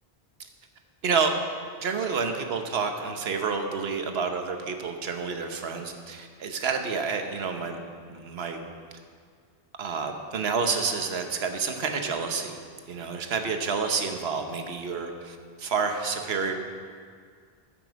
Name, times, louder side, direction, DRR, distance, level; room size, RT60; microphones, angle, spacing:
voice 1, 1.0-1.3 1.8-7.8 8.1-8.6 9.8-12.6 12.9-16.5, right 5 dB, 80° right, 5 dB, 1.2 m, -29 dB
14.0 x 5.9 x 6.1 m, 2.1 s
omnidirectional pair, 1.0 m